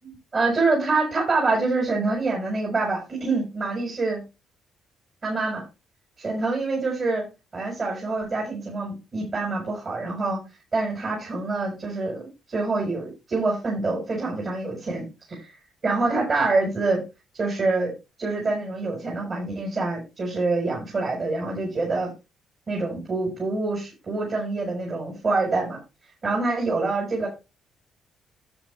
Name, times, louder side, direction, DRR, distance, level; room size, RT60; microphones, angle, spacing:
voice 1, 0.0-4.2 5.2-5.6 6.2-7.3 7.5-10.4 10.7-15.5 15.8-17.0 17.4-17.9 18.2-22.1 22.7-25.8 26.2-27.3, right 3 dB, 40° right, -2 dB, 4.9 m, -26 dB
9.9 x 8.4 x 3.4 m, 0.27 s
cardioid pair, 90°, 0 cm